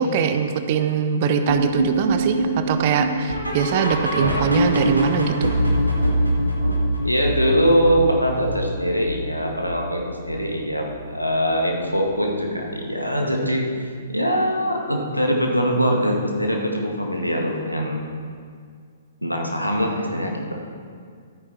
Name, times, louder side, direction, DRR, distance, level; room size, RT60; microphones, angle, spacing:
voice 1, 0.0-5.5, right 7 dB, 40° right, 8 dB, 0.8 m, -22 dB
sound 1, 1.5-10.6 10.9-11.2 11.5-11.6 12.1-12.2 12.7-12.8, right 1 dB, 85° right, 2.3 m, -24 dB
voice 2, 7.0-18.0 19.2-20.6, equal, 90° left, 1 dB, 1.9 m, -22 dB
13.5 x 9.4 x 4.2 m, 2.1 s
figure-of-eight pair, 115°, 0 cm